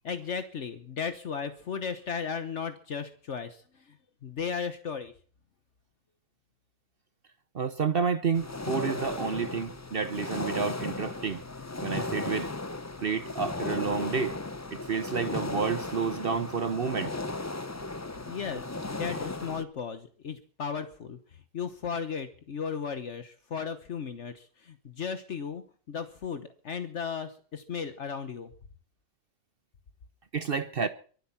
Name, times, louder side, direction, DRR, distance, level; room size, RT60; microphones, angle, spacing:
voice 1, 0.0-4.0 4.2-5.1 18.3-28.5, left 6 dB, 65° left, 1.4 m, -36 dB
voice 2, 7.5-11.4 11.8-12.5 13.0-14.4 14.7-17.2 30.3-30.9, right 5 dB, 50° right, 1.0 m, -30 dB
sound 1, 8.3-19.6, left 2 dB, 15° left, 0.6 m, -36 dB
24.0 x 8.2 x 5.8 m
omnidirectional pair, 1.3 m